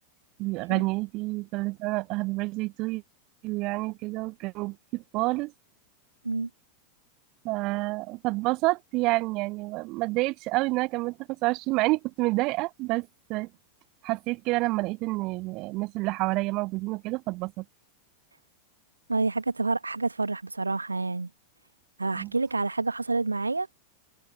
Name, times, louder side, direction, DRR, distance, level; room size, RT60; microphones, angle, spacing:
voice 1, 0.4-3.0 3.4-5.5 7.4-13.5 14.0-17.6 22.1-22.3, right 22 dB, 40° right, 0.6 m, -28 dB
voice 2, 19.1-21.3 22.0-23.7, right 3 dB, 80° right, 2.0 m, -28 dB
figure-of-eight pair, 90°, 0 cm